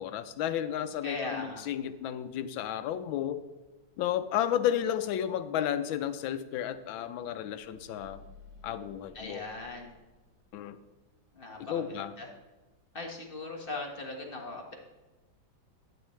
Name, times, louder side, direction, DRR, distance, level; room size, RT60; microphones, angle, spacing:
voice 1, 0.0-3.4 4.0-8.2 8.6-9.4 10.5-10.8 11.6-12.1, left 10 dB, 85° left, 12 dB, 1.4 m, -32 dB
voice 2, 1.0-1.6 9.1-9.9 11.3-12.3 12.9-14.7, left 2 dB, 30° left, 0 dB, 1.5 m, -39 dB
sound 1, 7.5-10.8, left 2 dB, 55° right, 3.0 m, -55 dB
12.0 x 9.3 x 3.2 m, 1.1 s
omnidirectional pair, 2.1 m